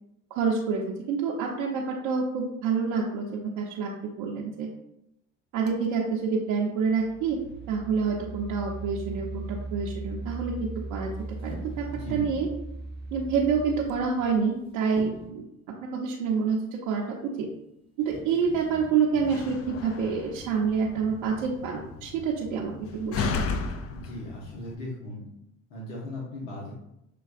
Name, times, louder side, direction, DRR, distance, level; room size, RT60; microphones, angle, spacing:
voice 1, 0.3-0.8 1.1-3.9 4.2-4.7 5.5-7.4 7.7-11.1 11.4-12.5 13.1-15.5 16.0-16.6 16.9-17.5 18.1-23.3, right 5 dB, 65° right, -3 dB, 0.8 m, -27 dB
sound 1, 5.7-5.9 6.8-14.8, right 3 dB, 25° right, 0.5 m, -38 dB
sound 2, 11.1-12.6 14.0-14.6 15.0-15.5 17.5-17.6 18.0-19.7 20.5-20.8, left 1 dB, 15° left, 0.8 m, -46 dB
voice 2, 11.9-12.2 23.9-25.2 25.7-26.7, left 1 dB, 80° left, -4 dB, 1.1 m, -38 dB
Slam, 19.1-24.8, left 4 dB, 35° left, 0.5 m, -35 dB
6.6 x 2.3 x 2.5 m, 0.84 s
hypercardioid pair, 70°, 40 cm